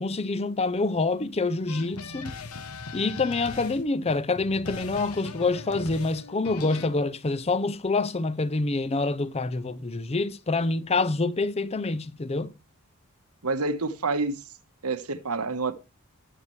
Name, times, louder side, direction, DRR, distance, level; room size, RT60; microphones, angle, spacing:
voice 1, 0.0-2.3 2.9-12.5, left 3 dB, 30° left, 0.6 m, -26 dB
sound 1, 1.7-6.9, left 4 dB, 80° left, 1.1 m, -39 dB
voice 2, 13.4-14.4 14.8-15.7, right 3 dB, 90° right, 1.2 m, -28 dB
19.0 x 6.7 x 3.2 m
head